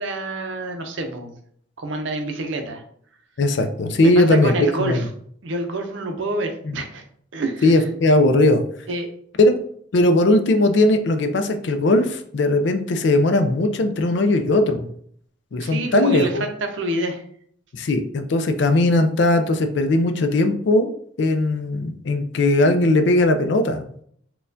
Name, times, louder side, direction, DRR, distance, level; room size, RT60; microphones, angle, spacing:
voice 1, 0.0-1.3 1.8-2.8 4.0-5.1 5.4-7.0 7.3-7.8 8.9-9.1 15.6-17.2, right 2 dB, 65° right, 5 dB, 0.5 m, -27 dB
voice 2, 3.4-5.0 6.7-6.8 7.6-8.6 9.4-9.5 9.9-14.9 15.5-16.4 17.7-20.9 21.2-23.9, left 2 dB, 60° left, 7 dB, 0.4 m, -18 dB
4.1 x 2.3 x 2.6 m, 0.63 s
head